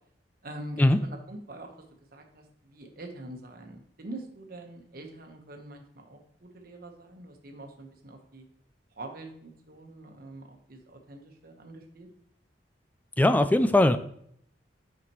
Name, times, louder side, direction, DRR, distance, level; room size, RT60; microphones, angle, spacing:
voice 1, 0.4-1.7 2.1-8.4 9.0-12.1, right 1 dB, 55° right, 3 dB, 1.2 m, -44 dB
voice 2, 13.2-14.0, left 1 dB, 10° left, 10 dB, 0.3 m, -20 dB
9.0 x 5.9 x 3.1 m, 0.67 s
head